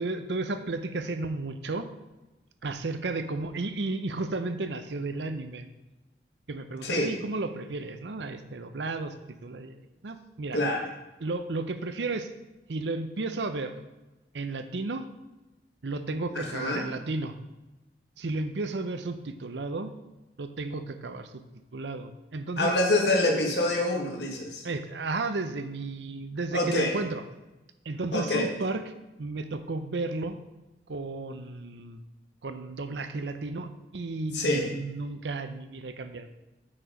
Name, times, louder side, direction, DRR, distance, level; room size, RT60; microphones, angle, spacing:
voice 1, 0.0-1.9 2.6-5.7 6.5-9.1 9.4-9.8 10.0-10.6 11.2-12.3 12.7-13.7 14.3-15.1 15.8-17.4 18.2-19.9 20.4-21.4 21.7-22.7 24.6-27.2 27.8-28.9 29.2-30.4 30.9-32.0 32.4-36.3, right 3 dB, 85° right, 10 dB, 0.7 m, -33 dB
voice 2, 6.8-7.1 10.5-10.8 16.4-16.8 22.6-24.6 26.5-27.0 28.1-28.5 34.3-34.7, left 1 dB, 80° left, 1 dB, 1.7 m, -26 dB
8.6 x 4.8 x 5.1 m, 1.0 s
head